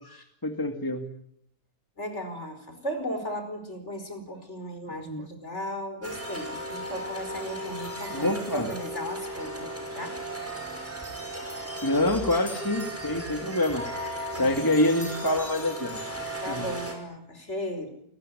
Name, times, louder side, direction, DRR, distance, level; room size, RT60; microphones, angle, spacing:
voice 1, 0.4-1.1 5.0-5.2 8.1-8.7 11.8-13.8 14.3-16.0 16.5-16.6, left 1 dB, 15° left, 5 dB, 2.1 m, -26 dB
voice 2, 2.0-10.2 11.3-11.5 14.3-14.7 16.3-17.9, equal, 50° left, 8 dB, 5.3 m, -36 dB
sound 1, 6.0-16.9, right 1 dB, 10° right, 5.9 m, -36 dB
28.5 x 20.0 x 9.9 m, 0.73 s
omnidirectional pair, 1.6 m